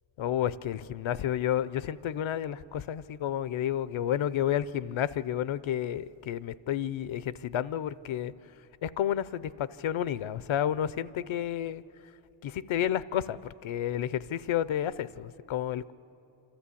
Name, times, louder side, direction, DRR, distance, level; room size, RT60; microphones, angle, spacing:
voice 1, 0.2-8.3 8.8-11.8 12.4-15.9, left 10 dB, 75° left, 18 dB, 0.6 m, -31 dB
27.5 x 13.5 x 8.4 m, 3.0 s
wide cardioid pair, 90°, 47 cm